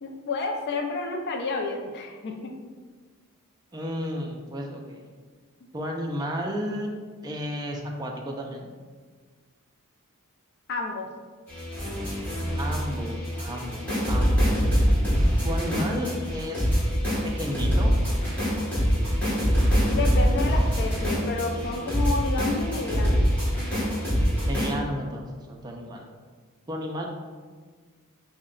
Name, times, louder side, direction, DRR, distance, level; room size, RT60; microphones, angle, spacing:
voice 1, 0.0-2.5 10.7-11.1 19.9-23.2, left 3 dB, 50° left, 2 dB, 0.4 m, -30 dB
voice 2, 3.7-5.1 5.7-6.9 7.2-8.7 12.6-14.7 15.4-16.7 17.2-17.9 24.5-26.1 26.7-27.1, equal, 20° right, 1 dB, 0.4 m, -33 dB
sound 1, 11.5-24.7, equal, 5° left, 1.3 m, -24 dB
3.7 x 2.1 x 3.7 m, 1.5 s
head